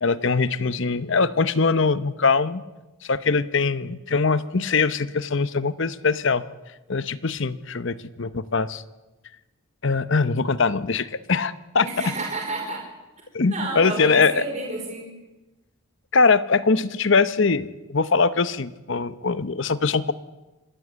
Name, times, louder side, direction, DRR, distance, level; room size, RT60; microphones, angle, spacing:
voice 1, 0.0-2.6 3.0-6.4 6.9-8.8 9.8-12.1 13.3-14.4 16.1-20.1, left 4 dB, 55° left, 15 dB, 0.8 m, -22 dB
voice 2, 11.8-12.8 13.5-15.1, right 2 dB, 30° right, -1 dB, 4.6 m, -30 dB
26.5 x 12.5 x 8.1 m, 1.1 s
head